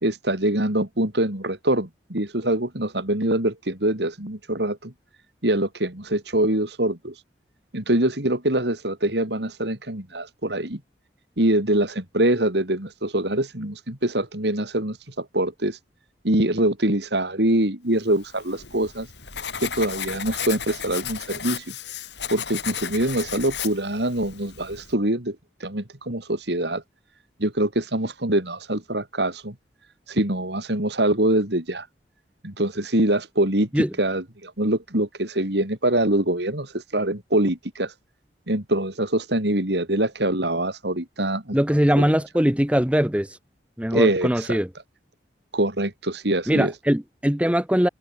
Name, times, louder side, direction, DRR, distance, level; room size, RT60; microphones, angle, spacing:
voice 1, 0.0-4.9 5.4-7.1 7.7-10.8 11.4-15.8 16.2-19.1 19.6-21.7 22.3-25.4 25.6-26.8 27.4-29.5 30.1-31.9 32.4-37.9 38.5-41.6 42.0-42.1 43.9-44.6 45.5-46.7, right 1 dB, 70° right, 3.9 m, -24 dB
Writing, 18.2-24.9, left 8 dB, 75° left, 6.1 m, -34 dB
voice 2, 41.5-43.3 43.8-44.7 46.5-47.9, equal, 5° right, 1.2 m, -21 dB
head